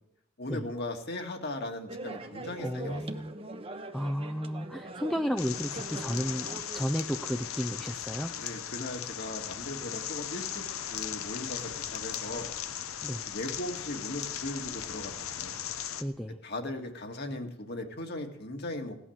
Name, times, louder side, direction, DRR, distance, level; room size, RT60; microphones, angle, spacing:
voice 1, 0.4-3.3 8.4-10.7 10.9-12.5 13.3-15.6 16.4-19.0, left 1 dB, 50° left, 4 dB, 2.0 m, -38 dB
sound 1, 1.9-6.9, right 2 dB, 25° right, 0.9 m, -42 dB
voice 2, 2.6-3.3 3.9-8.3 13.0-13.2 16.0-16.4, equal, 5° left, 6 dB, 0.5 m, -33 dB
sound 2, 5.4-16.0, left 9 dB, 80° left, 0.9 m, -37 dB
17.5 x 11.0 x 7.3 m, 0.80 s
head